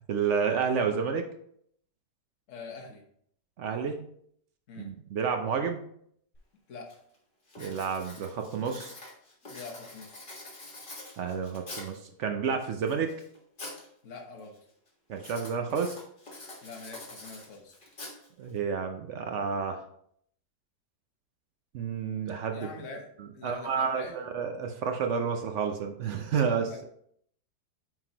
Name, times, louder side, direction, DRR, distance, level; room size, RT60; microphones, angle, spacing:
voice 1, 0.1-1.3 3.6-4.0 4.8-5.8 7.6-8.9 11.2-13.1 15.1-16.0 18.4-19.8 21.7-22.7 23.4-26.9, right 6 dB, 65° right, 5 dB, 0.7 m, -30 dB
voice 2, 2.5-3.0 4.7-4.9 6.7-6.9 9.4-10.2 14.0-14.6 16.6-17.8 22.5-24.3 26.7-26.9, left 4 dB, 50° left, 1 dB, 1.3 m, -44 dB
Writing, 6.3-6.4 6.9-7.2 7.5-12.1 12.6-13.9 14.2-14.6 15.2-18.6, left 2 dB, 30° left, 1.6 m, -45 dB
9.1 x 3.9 x 2.9 m, 0.67 s
omnidirectional pair, 1.8 m